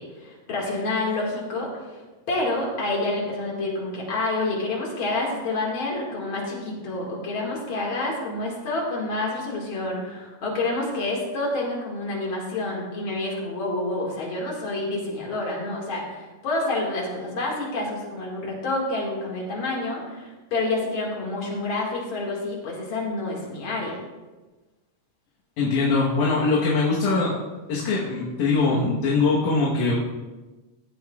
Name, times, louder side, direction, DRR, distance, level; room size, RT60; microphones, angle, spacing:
voice 1, 0.0-1.7 2.3-24.0, left 2 dB, 45° left, -2 dB, 2.3 m, -28 dB
voice 2, 25.6-27.3 27.7-29.9, left 3 dB, 70° left, -5 dB, 2.6 m, -22 dB
14.5 x 8.5 x 2.4 m, 1.2 s
omnidirectional pair, 3.8 m